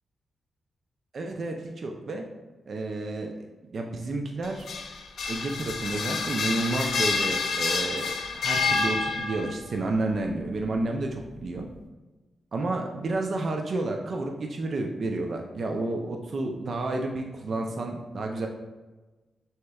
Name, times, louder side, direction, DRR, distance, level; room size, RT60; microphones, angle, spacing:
voice 1, 1.1-2.2 2.7-3.4 3.7-4.7 5.3-11.7 12.5-18.5, right 2 dB, 60° right, 2 dB, 0.4 m, -30 dB
sound 1, 4.4-9.6, left 4 dB, 80° left, 0.4 m, -28 dB
6.2 x 2.9 x 2.3 m, 1.2 s
cardioid pair, 65°, 0 cm